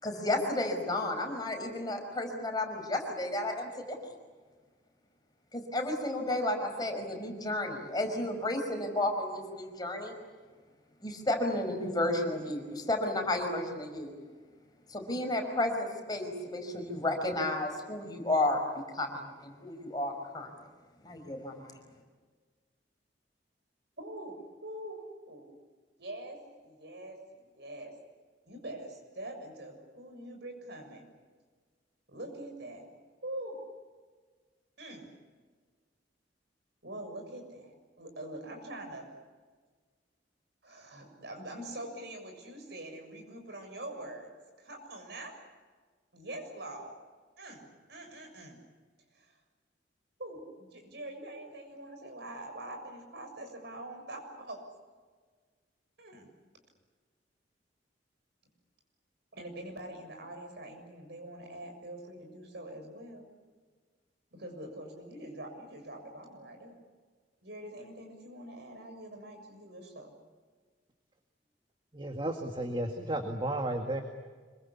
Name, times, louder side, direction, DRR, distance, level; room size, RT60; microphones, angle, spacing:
voice 1, 0.0-4.1 5.5-10.1 11.0-14.1 14.9-18.6 18.9-20.5 21.0-21.8, left 1 dB, 20° left, 3 dB, 5.3 m, -32 dB
voice 2, 24.0-25.5 26.0-27.9 28.5-31.0 32.1-32.9 33.2-33.6 34.8-35.1 36.8-37.7 38.0-39.1 40.6-44.3 44.6-45.4 46.1-46.9 47.4-48.6 49.1-49.4 50.2-54.6 56.0-56.3 59.3-63.3 64.3-66.8 67.4-70.1, right 1 dB, 65° right, 4 dB, 7.1 m, -44 dB
voice 3, 71.9-74.0, right 1 dB, 25° right, 4 dB, 2.0 m, -33 dB
26.5 x 24.0 x 8.5 m, 1.5 s
head